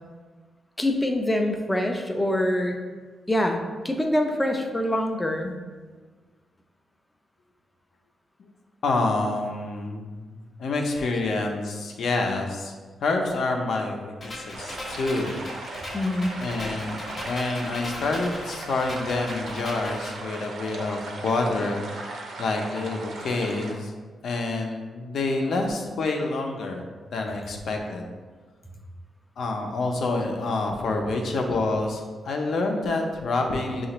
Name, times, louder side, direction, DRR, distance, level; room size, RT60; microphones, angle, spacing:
voice 1, 0.8-2.7 3.3-5.5 15.9-16.3, left 1 dB, 10° left, 3 dB, 0.4 m, -25 dB
voice 2, 8.8-10.3 10.6-12.7 13.0-15.3 16.4-23.9 24.2-28.1 29.4-33.9, left 3 dB, 65° left, 2 dB, 0.6 m, -27 dB
sound 1, 14.2-20.2, left 1 dB, 35° left, 0.9 m, -39 dB
sound 2, 14.5-23.7, right 2 dB, 65° right, 0.6 m, -38 dB
6.5 x 2.4 x 2.9 m, 1.4 s
wide cardioid pair, 160°, 0 cm